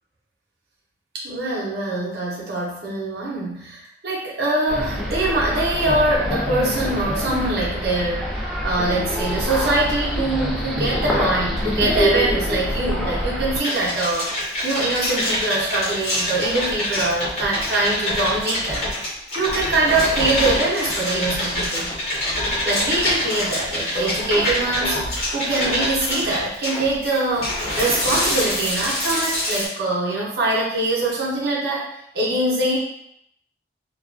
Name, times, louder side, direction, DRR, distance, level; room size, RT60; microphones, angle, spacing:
voice 1, 1.1-8.4 8.6-21.9 22.6-31.9 32.1-32.8, right 2 dB, 65° right, -5 dB, 0.7 m, -23 dB
sound 1, 4.7-13.6, equal, ahead, 0.3 m, -25 dB
sound 2, 13.5-29.7, left 1 dB, 40° left, 1.0 m, -25 dB
2.3 x 2.2 x 2.4 m, 0.75 s
head